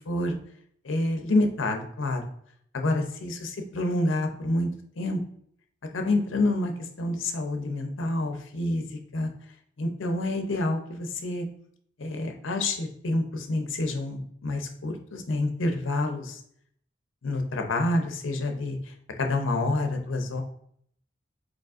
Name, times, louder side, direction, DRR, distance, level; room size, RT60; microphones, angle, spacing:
voice 1, 0.1-0.4 0.8-2.2 2.7-4.7 5.0-5.2 5.9-6.7 7.0-8.8 9.1-9.3 9.8-11.5 12.0-16.4 17.2-18.8 19.2-20.4, left 2 dB, 75° left, 4 dB, 0.6 m, -28 dB
5.1 x 4.1 x 2.4 m, 0.67 s
head